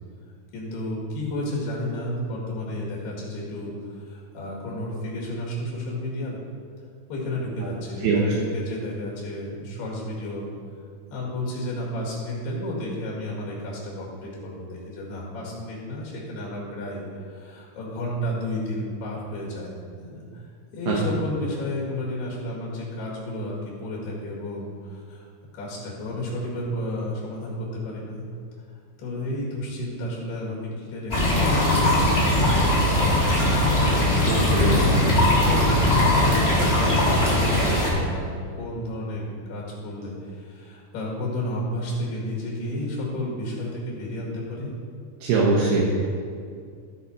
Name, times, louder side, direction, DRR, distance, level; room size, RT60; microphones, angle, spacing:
voice 1, 0.5-6.4 7.1-10.5 11.1-19.7 20.0-20.4 20.7-25.3 25.5-28.3 29.0-32.6 32.9-33.7 34.6-38.3 38.6-44.7, left 1 dB, 75° left, -5 dB, 4.1 m, -32 dB
sound 1, 31.1-37.9, left 1 dB, 25° left, 1.4 m, -20 dB
voice 2, 34.3-34.8 45.2-45.8, right 4 dB, 75° right, -4 dB, 2.9 m, -21 dB
15.0 x 5.8 x 4.2 m, 2.2 s
omnidirectional pair, 4.7 m